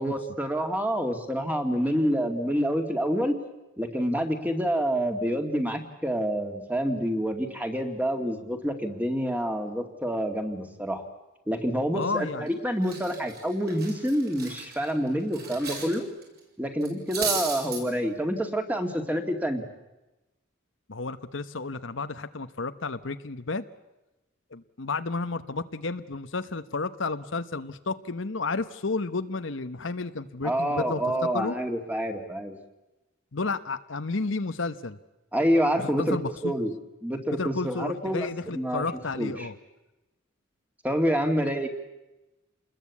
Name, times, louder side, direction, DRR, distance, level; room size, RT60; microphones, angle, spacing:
voice 1, 0.0-3.4 3.8-11.1 11.5-16.1 16.6-19.6 30.4-32.6 35.3-36.2 36.4-36.7 37.0-38.9 39.2-39.5 40.8-41.7, equal, 10° right, 5 dB, 2.3 m, -27 dB
voice 2, 11.9-12.5 20.9-23.7 24.5-31.6 33.3-35.0 35.8-36.6 37.3-39.5, left 3 dB, 65° left, 11 dB, 1.0 m, -32 dB
Cutlery silverware, 12.2-12.5 12.8-15.9 16.2-16.4 16.8-17.8, right 5 dB, 50° right, 7.4 m, -34 dB
28.5 x 21.0 x 8.5 m, 1.0 s
head